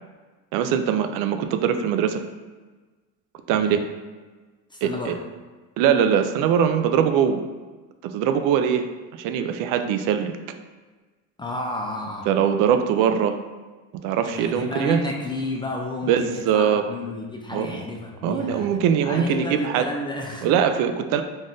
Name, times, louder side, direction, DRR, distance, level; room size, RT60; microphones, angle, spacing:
voice 1, 0.5-2.2 3.5-3.8 4.8-5.1 5.8-7.4 8.0-8.8 9.2-10.3 12.3-13.4 14.0-15.0 16.1-16.8 17.5-17.7 18.2-19.8 20.4-21.2, right 8 dB, 60° right, 7 dB, 0.5 m, -21 dB
voice 2, 4.7-5.2 11.4-12.3 14.3-20.5, left 1 dB, 15° left, -1 dB, 0.3 m, -31 dB
3.8 x 2.5 x 3.8 m, 1.3 s
supercardioid pair, 110°, 37 cm